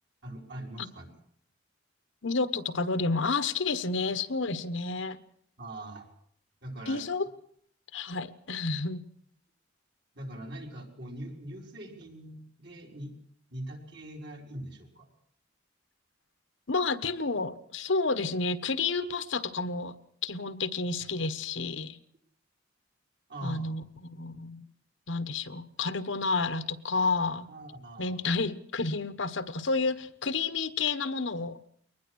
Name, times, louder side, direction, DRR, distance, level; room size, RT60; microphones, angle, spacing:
voice 1, 0.2-1.1 5.6-6.1 6.6-7.0 10.1-13.1 13.5-15.1 23.3-23.7 27.5-28.2, right 1 dB, 55° right, 1 dB, 5.0 m, -42 dB
voice 2, 2.2-5.2 6.9-7.3 7.9-9.0 16.7-19.9 20.2-22.0 23.4-24.7 25.1-27.5 28.0-31.6, left 4 dB, 75° left, 12 dB, 1.3 m, -30 dB
23.0 x 19.5 x 6.4 m, 0.63 s
head